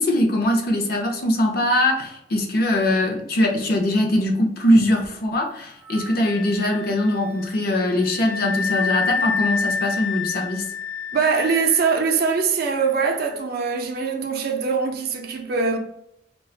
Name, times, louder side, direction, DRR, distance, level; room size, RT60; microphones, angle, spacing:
voice 1, 0.0-10.7, left 1 dB, 55° left, 0.6 m, -21 dB
Wind instrument woodwind instrument, 5.9-13.3, left 5 dB, 10° left, 0.5 m, -29 dB
voice 2, 11.1-15.8, right 5 dB, 55° right, 0.4 m, -22 dB
2.4 x 2.2 x 3.7 m
head